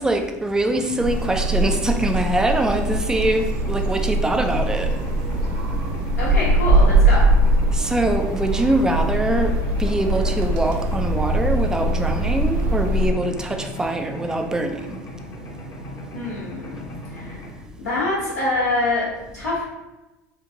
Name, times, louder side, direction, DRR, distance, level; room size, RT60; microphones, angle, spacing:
voice 1, 0.0-4.9 7.7-15.0, right 2 dB, 10° right, 0.4 m, -23 dB
Mechanisms, 0.6-17.5, left 1 dB, 40° left, 0.8 m, -37 dB
sound 1, 1.0-13.1, right 1 dB, 55° right, 0.6 m, -21 dB
voice 2, 6.2-7.2 16.1-16.8 17.1-17.4 17.8-19.1 19.3-19.6, left 2 dB, 90° left, 1.1 m, -25 dB
3.1 x 2.4 x 3.6 m
hypercardioid pair, 75°, 8 cm